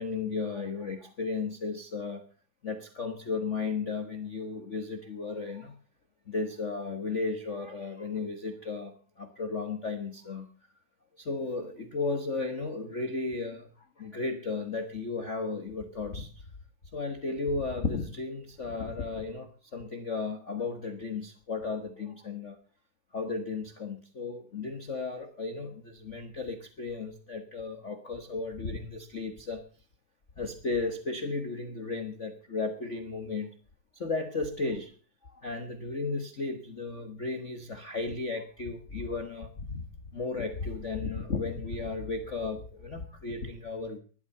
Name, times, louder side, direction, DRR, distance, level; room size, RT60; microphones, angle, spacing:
voice 1, 0.0-2.2 2.6-5.8 6.3-10.5 11.2-13.7 14.0-16.4 16.9-22.6 23.1-29.6 30.4-33.5 33.9-34.9 35.2-39.8 40.1-44.0, left 4 dB, 75° left, 7 dB, 0.6 m, -34 dB
14.0 x 12.0 x 6.7 m, 0.40 s
omnidirectional pair, 3.6 m